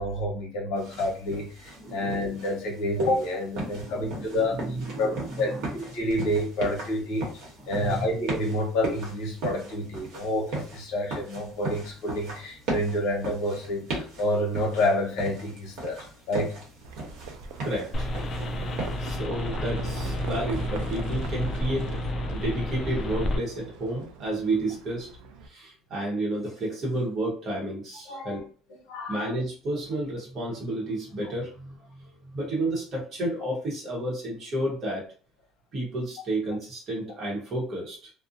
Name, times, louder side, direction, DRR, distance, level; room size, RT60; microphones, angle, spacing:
voice 1, 0.0-4.6 5.0-7.3 7.7-16.0 16.3-16.6 28.1-28.4 28.9-29.3, left 1 dB, 65° left, 0 dB, 1.0 m, -28 dB
sound 1, 0.8-19.1, right 2 dB, 65° right, 0.9 m, -38 dB
voice 2, 1.8-2.2 3.6-5.7 7.6-8.1 17.6-18.1 19.0-21.9 22.3-25.1 25.4-28.5 29.1-35.0 35.7-38.1, right 1 dB, 30° right, -4 dB, 0.8 m, -31 dB
Livestock farm animals working animals, 16.8-25.5, right 5 dB, 80° right, 0.4 m, -42 dB
sound 2, 17.9-23.4, left 1 dB, 25° left, 0.3 m, -30 dB
2.5 x 2.0 x 2.5 m, 0.40 s
cardioid pair, 175°, 0 cm